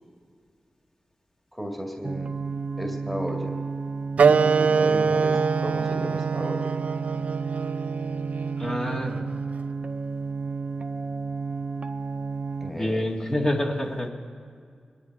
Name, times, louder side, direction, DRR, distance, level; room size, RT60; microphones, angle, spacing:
voice 1, 1.5-2.4 2.8-3.6 4.2-6.8 12.6-13.1, equal, 5° left, 1 dB, 2.0 m, -34 dB
sound 1, 2.0-12.7, right 4 dB, 50° right, 0.7 m, -32 dB
Wind instrument woodwind instrument, 4.2-9.3, right 5 dB, 70° right, 0.3 m, -24 dB
voice 2, 8.6-9.2 12.7-14.1, left 1 dB, 35° left, -2 dB, 2.2 m, -27 dB
24.0 x 11.0 x 4.7 m, 2.1 s
cardioid pair, 50°, 2 cm